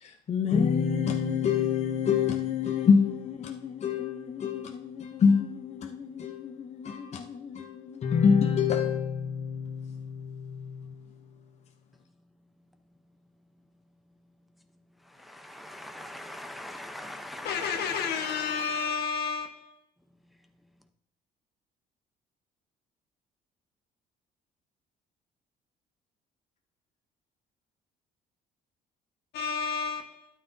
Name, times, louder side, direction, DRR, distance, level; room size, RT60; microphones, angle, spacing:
voice 1, 0.0-10.9, left 6 dB, 40° left, 0.8 m, -27 dB
voice 2, 15.1-18.9, left 1 dB, ahead, 0.8 m, -42 dB
voice 3, 17.4-19.7 29.3-30.3, left 6 dB, 75° left, 1.4 m, -31 dB
12.5 x 9.4 x 2.7 m
cardioid pair, 110°, 17 cm